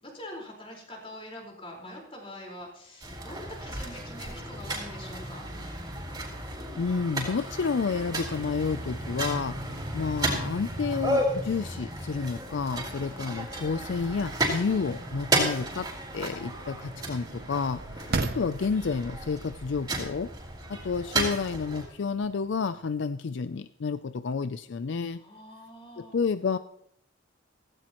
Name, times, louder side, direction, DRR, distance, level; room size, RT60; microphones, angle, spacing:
voice 1, 0.0-5.4 25.2-26.2, left 1 dB, 30° left, 0 dB, 4.5 m, -44 dB
sound 1, 3.0-21.9, right 1 dB, 20° right, 4.1 m, -33 dB
voice 2, 6.8-9.6 9.9-20.3 20.7-25.2 26.0-26.6, left 5 dB, 65° left, 12 dB, 0.4 m, -30 dB
sound 2, 12.2-23.0, right 3 dB, 50° right, 0.7 m, -41 dB
17.0 x 16.5 x 3.0 m, 0.71 s
head